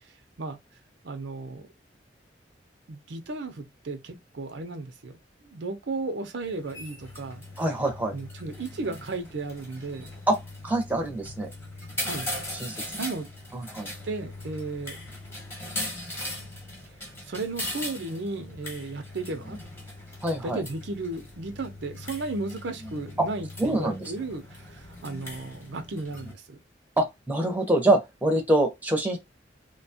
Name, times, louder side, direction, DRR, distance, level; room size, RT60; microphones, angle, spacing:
voice 1, 1.0-1.7 2.9-5.1 5.4-7.4 8.1-10.1 12.0-12.3 12.6-13.3 14.0-15.0 17.3-19.6 20.4-26.6, right 3 dB, 80° right, 0.6 m, -34 dB
sound 1, 6.4-26.3, left 1 dB, 15° left, 1.0 m, -39 dB
voice 2, 7.6-8.1 10.3-10.4 10.6-11.5 12.6-12.8 13.5-13.9 20.2-20.6 23.2-23.3 23.6-24.1 27.0-29.2, right 1 dB, 10° right, 0.6 m, -25 dB
2.8 x 2.2 x 2.7 m
head